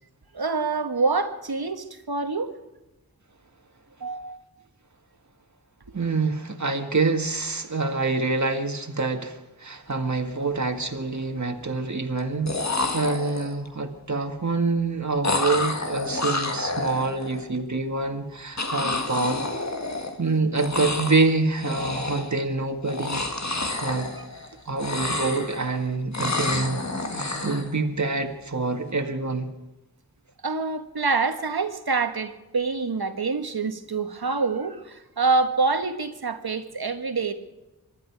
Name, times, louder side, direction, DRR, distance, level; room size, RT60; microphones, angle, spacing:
voice 1, 0.3-2.5 4.0-4.4 24.2-24.3 30.4-37.3, right 4 dB, 80° right, 7 dB, 1.5 m, -26 dB
voice 2, 5.9-19.4 20.2-24.1 24.6-26.8 27.1-29.5, right 3 dB, 50° right, 4 dB, 1.9 m, -26 dB
sound 1, 10.0-10.2 10.6-11.2 12.2-12.3 12.5-13.7 15.2-17.4 18.6-20.3 20.5-21.3 21.6-22.4 22.8-24.5 24.7-25.8 26.1-27.7, left 2 dB, 45° left, 1.9 m, -29 dB
24.5 x 12.5 x 4.7 m, 1.0 s
wide cardioid pair, 65°, 37 cm